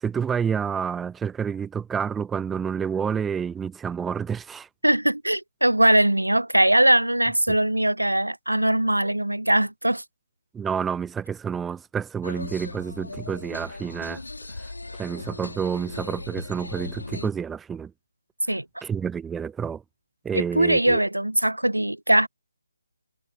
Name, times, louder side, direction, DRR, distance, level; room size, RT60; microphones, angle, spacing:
voice 1, 0.0-4.7 7.5-7.6 10.5-14.2 15.0-17.9 18.8-19.8 20.2-21.0, right 7 dB, 5° right, 0.6 m, -29 dB
voice 2, 4.8-10.0 18.5-18.6 20.3-22.3, right 1 dB, 85° right, 0.3 m, -21 dB
sound 1, 12.2-17.3, left 2 dB, 75° left, 3.1 m, -38 dB
figure-of-eight pair, 150°, 0 cm